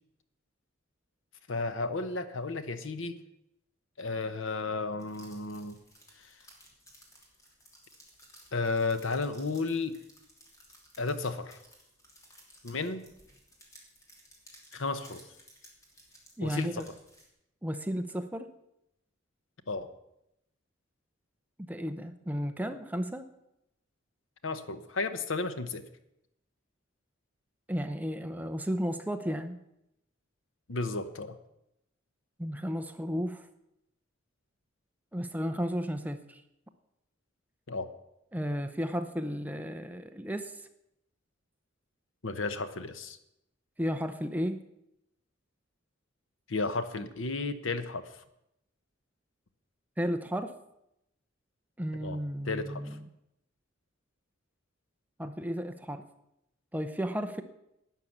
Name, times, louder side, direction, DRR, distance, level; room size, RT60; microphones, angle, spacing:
voice 1, 1.5-3.2 4.0-5.8 6.2-6.3 8.5-10.0 11.0-11.6 12.6-13.1 14.7-15.2 16.4-16.8 19.7-19.9 24.4-25.9 30.7-31.4 37.7-37.9 42.2-43.2 46.5-48.2 51.9-52.2 52.4-53.0, left 3 dB, 75° left, 11 dB, 1.0 m, -33 dB
sound 1, 5.0-17.3, equal, 15° left, 3.0 m, -57 dB
voice 2, 16.4-16.8 17.6-18.5 21.7-23.3 27.7-29.6 32.4-33.4 35.1-36.4 38.3-40.5 43.8-44.6 50.0-50.5 51.8-53.0 55.2-56.0 56.7-57.4, equal, 10° right, 8 dB, 0.7 m, -33 dB
11.5 x 9.5 x 7.2 m, 0.84 s
head